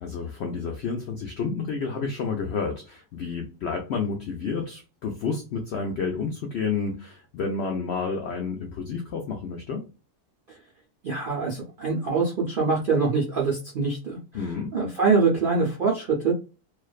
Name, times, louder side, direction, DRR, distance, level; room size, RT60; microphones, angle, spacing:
voice 1, 0.0-9.8 14.3-14.7, left 5 dB, 80° left, 2 dB, 0.6 m, -30 dB
voice 2, 11.0-14.2 14.7-16.3, right 4 dB, 65° right, -3 dB, 0.5 m, -24 dB
2.5 x 2.2 x 2.3 m, 0.32 s
omnidirectional pair, 1.7 m